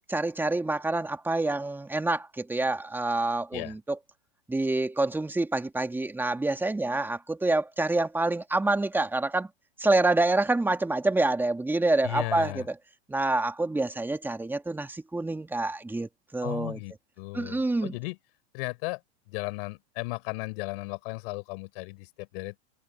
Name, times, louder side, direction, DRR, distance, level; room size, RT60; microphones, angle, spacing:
voice 1, 0.1-4.0 4.5-9.5 9.8-12.6 13.1-16.8 17.3-17.9, right 2 dB, 5° right, 1.9 m, -27 dB
voice 2, 12.0-12.7 16.4-18.2 18.5-19.0 19.3-22.6, left 27 dB, 55° left, 4.9 m, -35 dB
hypercardioid pair, 125°, 34 cm